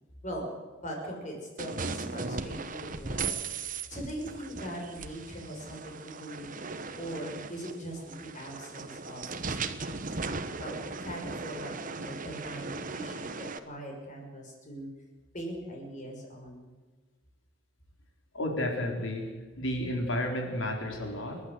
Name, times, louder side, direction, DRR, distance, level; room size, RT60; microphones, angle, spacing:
voice 1, 0.8-3.3 3.9-10.2 10.6-14.9 15.3-16.7, equal, 40° left, 1 dB, 6.3 m, -41 dB
sound 1, 1.6-13.6, right 4 dB, 40° right, 1.2 m, -38 dB
voice 2, 18.3-19.3 19.6-21.4, left 1 dB, 70° left, 2 dB, 4.6 m, -31 dB
29.5 x 11.5 x 8.1 m, 1.3 s
head